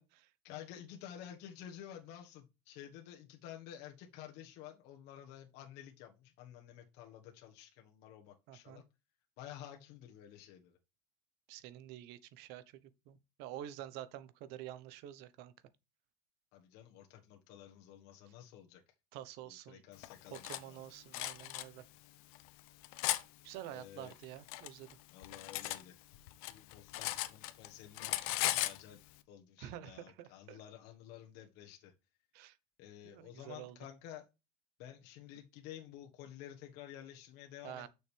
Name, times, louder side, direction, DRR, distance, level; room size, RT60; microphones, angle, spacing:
voice 1, 0.4-8.9 9.4-10.8 16.5-18.8 19.4-20.8 23.7-24.1 25.1-26.0 26.5-29.0 29.3-31.9 32.8-34.3 34.8-37.9, left 11 dB, 65° left, 1.4 m, -52 dB
voice 2, 8.5-8.8 11.5-15.5 19.1-19.8 20.3-21.8 23.4-24.9 29.6-30.6 32.3-32.6 33.0-33.8 37.6-37.9, right 12 dB, 65° right, 0.9 m, -48 dB
Cutlery silverware, 20.0-20.6 21.1-21.6 22.3-23.2 24.1-25.8 26.1-27.7 27.9-28.8, left 17 dB, 85° left, 0.8 m, -37 dB
7.3 x 6.4 x 3.4 m
cardioid pair, 140°, 18 cm